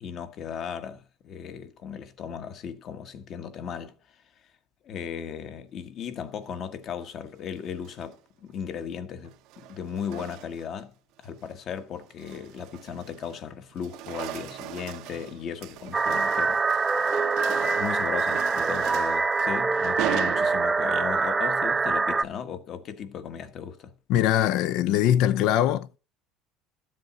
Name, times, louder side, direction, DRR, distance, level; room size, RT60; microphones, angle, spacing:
voice 1, 0.0-3.9 4.8-10.9 11.2-16.9 17.5-23.9, left 7 dB, 50° left, 1.4 m, -36 dB
sound 1, 7.6-8.1 9.2-10.8 11.2-11.5 12.0-13.4 13.7-21.0, right 14 dB, 70° right, 0.7 m, -38 dB
sound 2, 15.9-22.2, right 4 dB, 20° right, 0.7 m, -25 dB
voice 2, 24.1-26.0, left 11 dB, 70° left, 0.6 m, -22 dB
12.5 x 7.5 x 4.0 m
supercardioid pair, 100°, 0 cm